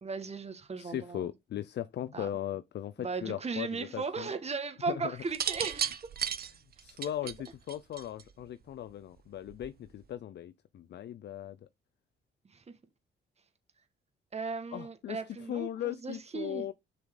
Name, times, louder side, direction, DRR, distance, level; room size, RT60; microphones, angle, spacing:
voice 1, 0.0-1.3 2.1-2.3 3.0-6.0 12.5-12.6 14.3-16.7, right 4 dB, 30° right, 2.0 m, -37 dB
voice 2, 0.8-4.3 4.9-5.2 6.8-11.6 14.7-16.7, left 11 dB, 60° left, 0.6 m, -38 dB
sound 1, 5.3-8.4 9.5-9.9, right 8 dB, 50° right, 1.1 m, -34 dB
7.5 x 6.0 x 3.9 m
cardioid pair, 90°, 20 cm